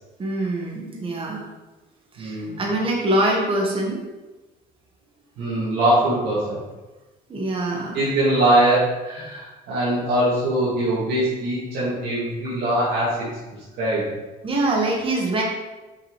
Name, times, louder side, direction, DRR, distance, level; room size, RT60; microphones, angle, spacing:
voice 1, 0.2-1.4 2.2-4.0 7.3-8.0 14.4-15.4, right 1 dB, 30° right, -1 dB, 1.4 m, -24 dB
voice 2, 2.2-2.6 5.4-6.6 7.9-13.2 13.8-14.1, right 1 dB, 80° right, -9 dB, 2.2 m, -22 dB
6.2 x 5.9 x 3.2 m, 1.1 s
cardioid pair, 110°, 17 cm